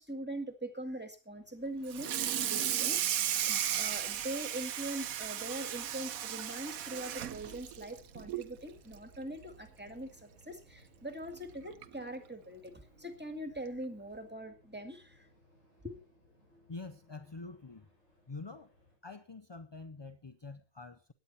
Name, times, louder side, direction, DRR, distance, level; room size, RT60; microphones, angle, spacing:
voice 1, 0.0-3.2 3.5-15.3 15.8-16.0, right 1 dB, 10° right, 1.9 m, -42 dB
sound 1, 1.2-19.0, left 1 dB, 65° left, 6.7 m, -65 dB
Water tap faucet / Sink (filling or washing), 1.9-8.5 8.9-9.2 9.5-9.6 10.0-10.1 11.2-11.3 11.8-12.0, right 10 dB, 90° right, 1.3 m, -35 dB
voice 2, 16.7-17.9 18.3-18.7 19.0-21.1, left 3 dB, 35° left, 0.4 m, -46 dB
17.0 x 10.5 x 4.2 m
omnidirectional pair, 1.4 m